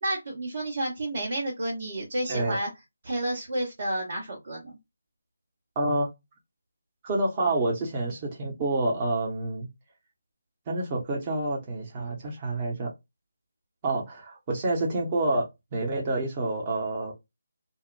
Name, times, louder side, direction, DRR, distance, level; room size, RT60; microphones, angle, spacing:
voice 1, 0.0-2.7 3.0-4.8, right 1 dB, 55° right, 1.2 m, -30 dB
voice 2, 5.8-6.1 7.0-9.7 10.7-12.9 13.8-17.1, right 2 dB, 30° right, 0.8 m, -28 dB
2.7 x 2.1 x 2.5 m
figure-of-eight pair, 155°, 0 cm